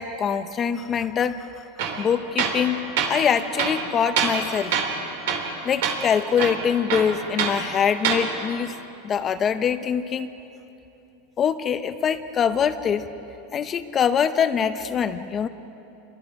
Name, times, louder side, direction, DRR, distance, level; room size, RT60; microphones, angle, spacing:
voice 1, 0.0-1.4 2.0-4.8 5.6-8.7 9.0-10.3 11.4-13.1 13.5-15.5, left 7 dB, 25° left, 10 dB, 0.9 m, -24 dB
Tools, 1.8-2.0 2.4-2.6 3.0-3.1 3.6-4.4 4.7-5.0 5.3-5.5 5.8-6.0 6.4-7.6 8.0-8.2, right 7 dB, 70° right, 3.4 m, -24 dB
28.5 x 22.5 x 4.9 m, 2.8 s
supercardioid pair, 145°, 0 cm